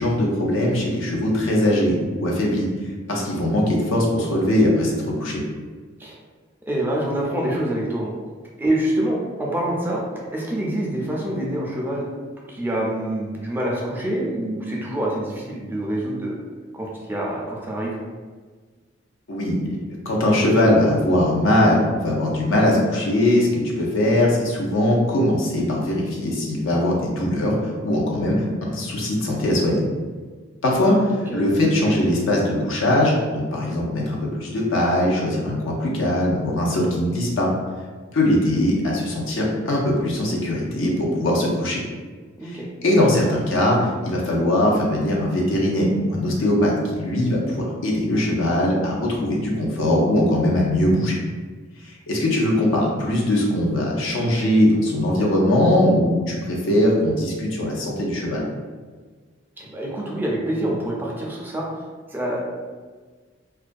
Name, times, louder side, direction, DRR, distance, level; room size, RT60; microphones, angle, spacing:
voice 1, 0.0-2.7 3.1-5.4 19.3-19.8 20.1-27.5 27.8-29.8 30.6-31.1 31.3-37.5 38.1-41.8 42.8-51.2 51.8-58.5, left 1 dB, 80° left, -2 dB, 0.6 m, -21 dB
voice 2, 6.7-8.1 8.6-10.1 10.3-12.1 12.5-16.4 16.7-18.0 31.1-31.4 42.4-42.7 59.6-61.7 62.1-62.4, right 1 dB, 10° right, -4 dB, 0.3 m, -26 dB
2.3 x 2.2 x 2.5 m, 1.5 s
head